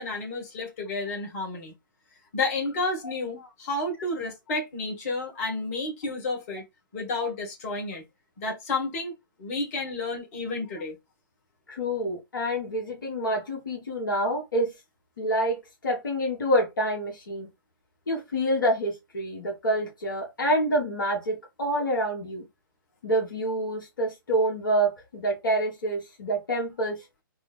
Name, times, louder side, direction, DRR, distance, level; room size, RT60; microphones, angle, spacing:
voice 1, 0.0-1.7 2.3-6.6 6.9-8.0 8.4-9.1 9.4-11.0, left 3 dB, 40° left, 1.4 m, -31 dB
voice 2, 11.7-14.7 15.2-17.5 18.1-22.4 23.0-27.0, right 1 dB, 65° left, 1.2 m, -27 dB
3.5 x 2.0 x 3.4 m
figure-of-eight pair, 125°, 12 cm